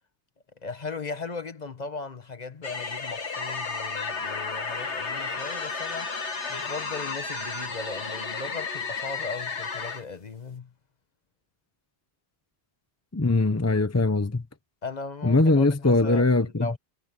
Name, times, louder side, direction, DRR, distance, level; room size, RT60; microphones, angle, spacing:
voice 1, 0.6-10.7 14.8-16.8, left 4 dB, 40° left, 1.2 m, -37 dB
sound 1, 2.6-10.0, left 4 dB, 90° left, 2.1 m, -33 dB
voice 2, 13.1-14.4 15.2-16.8, left 2 dB, 15° left, 0.7 m, -21 dB
omnidirectional pair, 1.1 m